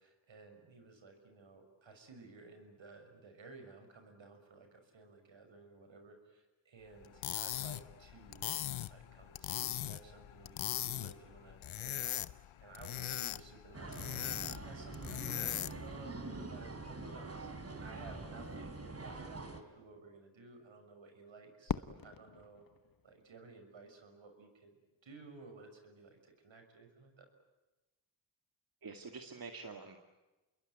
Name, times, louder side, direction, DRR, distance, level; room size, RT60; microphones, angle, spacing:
voice 1, 0.0-8.5 8.9-22.6 23.0-27.3, right 3 dB, 70° right, 6 dB, 6.5 m, -55 dB
sound 1, 7.0-15.9, left 12 dB, 80° left, 0.9 m, -40 dB
sound 2, 13.7-19.6, right 3 dB, 30° right, 4.1 m, -45 dB
Fireworks, 21.7-23.9, left 6 dB, 45° left, 1.2 m, -42 dB
voice 2, 28.8-30.0, right 4 dB, 45° right, 5 dB, 2.3 m, -47 dB
28.0 x 21.5 x 9.4 m, 1.1 s
cardioid pair, 60°, 47 cm